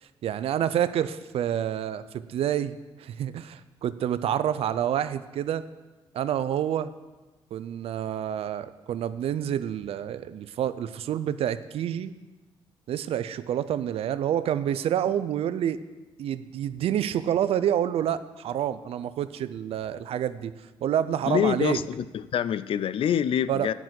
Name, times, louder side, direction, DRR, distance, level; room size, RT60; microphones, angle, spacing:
voice 1, 0.2-5.6 6.1-6.9 7.5-12.1 12.9-15.8 16.2-20.5 20.8-21.8 23.5-23.7, right 10 dB, 75° right, 14 dB, 0.5 m, -28 dB
voice 2, 21.3-23.7, left 9 dB, 65° left, 16 dB, 0.4 m, -26 dB
9.1 x 6.0 x 7.6 m, 1.2 s
cardioid pair, 65°, 10 cm